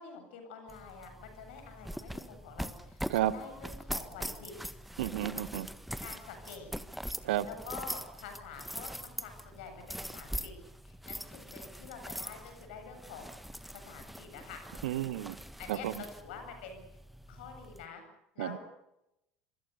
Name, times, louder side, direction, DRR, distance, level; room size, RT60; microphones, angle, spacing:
voice 1, 0.0-4.5 6.0-6.7 7.2-10.5 10.8-13.4 13.7-14.6 15.6-16.8 17.3-18.0 18.3-18.6, left 6 dB, 65° left, 6 dB, 7.8 m, -47 dB
sound 1, 0.7-17.8, equal, ahead, 1.6 m, -43 dB
voice 2, 5.0-5.7 7.2-7.4 14.8-15.3 15.7-15.9 18.4-18.6, right 14 dB, 65° right, 16 dB, 1.4 m, -31 dB
27.0 x 24.5 x 6.8 m, 0.86 s
figure-of-eight pair, 65°, 6 cm